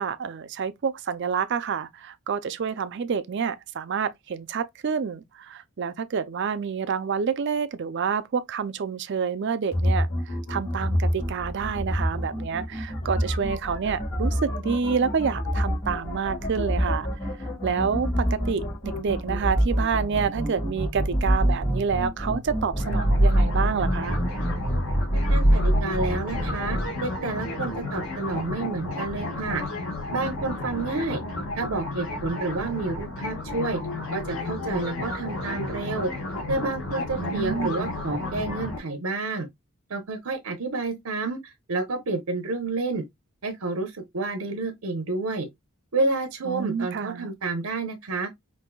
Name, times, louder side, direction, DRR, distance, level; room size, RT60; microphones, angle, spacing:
voice 1, 0.0-17.3 17.6-24.2 37.2-37.9 46.5-47.3, right 6 dB, 55° right, 0.4 m, -28 dB
sound 1, 9.7-26.9, equal, 55° left, 2.3 m, -26 dB
sound 2, 22.8-38.8, left 2 dB, 70° left, 1.5 m, -33 dB
voice 2, 25.3-29.6 30.1-31.2 31.6-33.8 34.1-36.1 36.5-39.5 39.9-43.0 43.4-45.5 45.9-48.3, right 3 dB, 90° right, 0.8 m, -29 dB
5.3 x 2.6 x 2.2 m
head